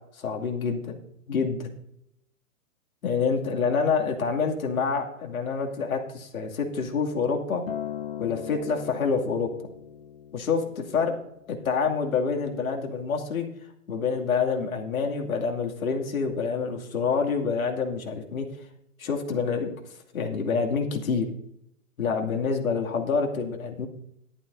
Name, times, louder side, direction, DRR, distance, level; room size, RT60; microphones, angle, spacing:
voice 1, 0.2-1.0 1.3-1.7 3.0-7.6 8.2-9.5 10.3-11.2 11.5-13.5 13.9-18.5 19.0-19.7 20.1-21.3 22.0-23.9, left 5 dB, 75° left, 1 dB, 2.5 m, -27 dB
Acoustic guitar, 7.7-12.0 12.8-12.9, left 9 dB, 45° left, 0.5 m, -39 dB
14.0 x 12.0 x 2.7 m, 0.76 s
hypercardioid pair, 180°, 43 cm